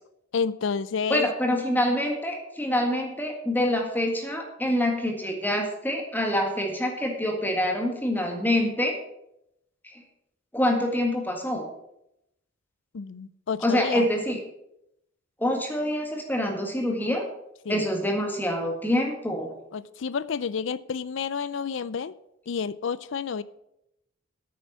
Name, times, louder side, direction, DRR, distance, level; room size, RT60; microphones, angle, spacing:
voice 1, 0.3-1.3 12.9-14.1 17.7-17.9 19.7-22.1 22.5-23.4, left 6 dB, 65° left, 18 dB, 0.5 m, -30 dB
voice 2, 1.1-9.0 9.8-10.0 10.5-11.7 13.6-14.4 15.4-17.3 17.7-19.5, left 1 dB, 10° left, 2 dB, 1.8 m, -26 dB
9.5 x 6.9 x 7.3 m, 0.81 s
head